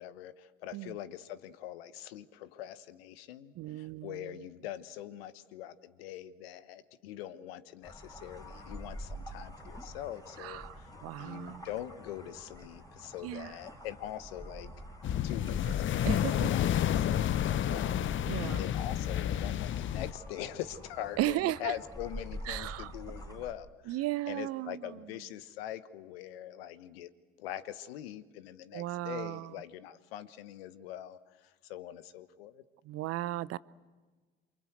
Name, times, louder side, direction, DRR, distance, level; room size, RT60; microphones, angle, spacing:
voice 1, 0.0-10.9 11.2-14.7 15.1-27.1 27.4-32.6, left 12 dB, 75° left, 1.1 m, -43 dB
voice 2, 3.6-4.3 10.4-10.7 11.0-11.7 13.2-13.5 16.0-16.5 18.3-18.7 21.2-21.7 22.5-22.9 23.9-25.0 28.7-29.5 32.8-33.6, right 15 dB, 50° right, 0.7 m, -35 dB
sound 1, 7.8-23.5, equal, 10° left, 4.0 m, -47 dB
sound 2, 15.0-20.1, left 11 dB, 40° left, 0.7 m, -30 dB
27.5 x 24.5 x 7.9 m
hypercardioid pair, 60°, 30 cm